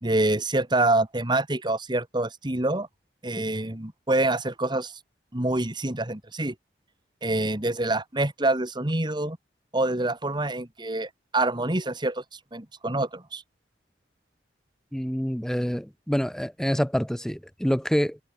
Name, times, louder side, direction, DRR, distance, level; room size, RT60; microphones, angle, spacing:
voice 1, 0.0-2.9 3.2-4.9 5.3-6.6 7.2-9.4 9.7-13.4, right 2 dB, 25° right, 1.9 m, -26 dB
voice 2, 14.9-18.2, equal, 5° left, 0.6 m, -27 dB
head